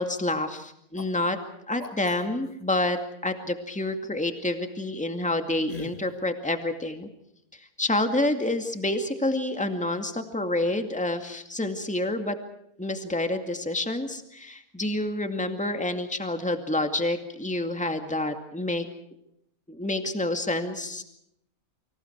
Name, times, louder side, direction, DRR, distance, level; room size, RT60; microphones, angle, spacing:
voice 1, 0.0-1.4 1.7-7.1 7.8-12.4 12.8-18.9 19.7-21.0, left 2 dB, 5° left, 6 dB, 2.2 m, -28 dB
sound 1, 1.0-1.1 1.8-2.6 5.7-6.1, left 4 dB, 25° left, 2.2 m, -40 dB
29.0 x 26.0 x 4.7 m, 0.75 s
omnidirectional pair, 1.5 m